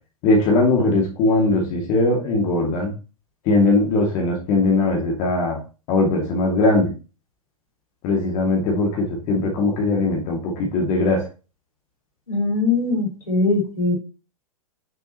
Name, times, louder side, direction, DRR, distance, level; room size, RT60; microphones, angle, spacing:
voice 1, 0.2-2.9 3.5-5.6 5.9-6.9 8.0-11.2, left 2 dB, 40° left, -1 dB, 2.4 m, -20 dB
voice 2, 12.3-13.9, left 3 dB, 85° left, -1 dB, 3.7 m, -21 dB
6.7 x 6.1 x 3.0 m, 0.32 s
figure-of-eight pair, 100°, 18 cm